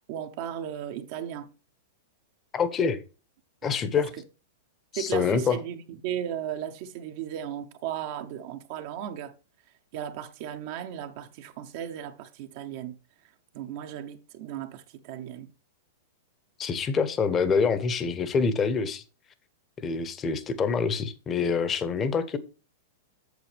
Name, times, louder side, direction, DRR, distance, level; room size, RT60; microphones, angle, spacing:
voice 1, 0.1-1.5 3.6-4.0 4.9-9.3 9.9-13.0 13.5-15.5, right 10 dB, 55° right, 0.8 m, -36 dB
voice 2, 2.5-3.0 3.6-4.1 4.9-5.6 16.6-19.0 19.8-22.4, left 5 dB, 25° left, 1.0 m, -26 dB
8.2 x 7.0 x 3.4 m
hypercardioid pair, 115°, 0 cm